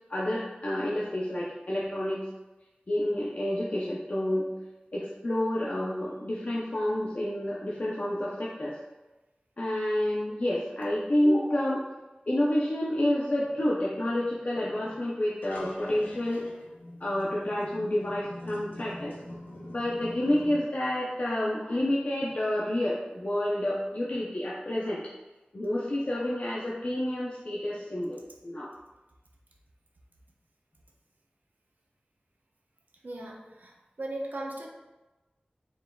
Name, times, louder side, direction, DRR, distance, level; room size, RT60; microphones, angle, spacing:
voice 1, 0.1-2.2 2.9-4.5 4.9-8.8 9.6-11.8 12.3-16.4 17.0-19.2 19.7-25.0 25.5-28.7, left 1 dB, 50° left, -6 dB, 0.6 m, -29 dB
sound 1, 15.3-20.6, left 1 dB, 85° left, 0.8 m, -44 dB
voice 2, 33.0-34.7, right 1 dB, 70° right, -1 dB, 0.7 m, -38 dB
4.5 x 3.6 x 2.3 m, 1.1 s
wide cardioid pair, 45°, 3 cm